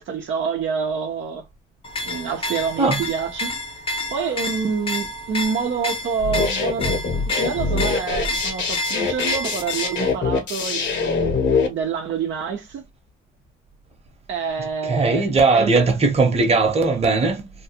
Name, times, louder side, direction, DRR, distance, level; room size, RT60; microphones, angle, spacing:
voice 1, 0.0-1.5 2.0-3.6 4.1-7.0 7.3-11.1 11.6-12.8 14.3-15.3 15.5-15.9, right 6 dB, 70° right, 0.8 m, -27 dB
sound 1, 1.8-10.2, left 2 dB, 25° left, 0.7 m, -30 dB
sound 2, 6.2-11.7, left 4 dB, 65° left, 1.2 m, -23 dB
voice 2, 14.9-17.5, right 3 dB, 30° right, 1.1 m, -18 dB
3.0 x 2.3 x 2.8 m
cardioid pair, 90°, 20 cm